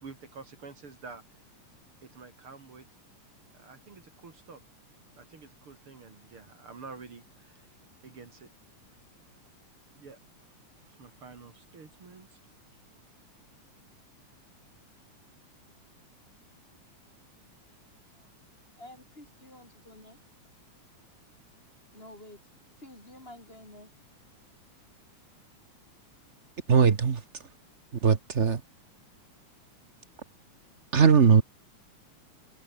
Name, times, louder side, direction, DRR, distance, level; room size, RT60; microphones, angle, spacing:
voice 1, 0.0-1.5 2.0-2.9 3.5-4.6 5.2-7.7 8.0-8.5 9.9-10.2 10.9-12.4, right 4 dB, 45° right, 3.6 m, -48 dB
voice 2, 18.8-20.2 21.9-22.4 22.8-23.9, left 1 dB, 20° left, 5.5 m, -49 dB
voice 3, 26.7-27.2 28.0-28.6 30.9-31.4, right 6 dB, 65° right, 0.7 m, -20 dB
omnidirectional pair, 3.4 m